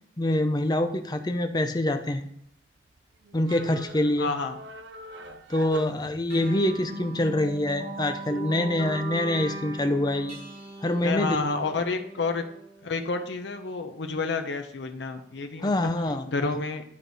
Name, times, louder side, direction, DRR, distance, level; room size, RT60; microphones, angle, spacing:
voice 1, 0.2-2.3 3.3-4.3 5.5-10.4 10.8-11.4 15.6-16.3, left 1 dB, 25° left, 7 dB, 0.5 m, -25 dB
sound 1, 2.4-6.7, right 2 dB, 75° right, 0.6 m, -44 dB
voice 2, 4.2-4.6 11.0-12.4 12.8-15.9 16.3-16.8, left 3 dB, 75° left, 6 dB, 0.6 m, -29 dB
sound 2, 6.3-13.2, right 3 dB, 55° right, 2.7 m, -39 dB
9.9 x 4.7 x 4.0 m, 0.71 s
head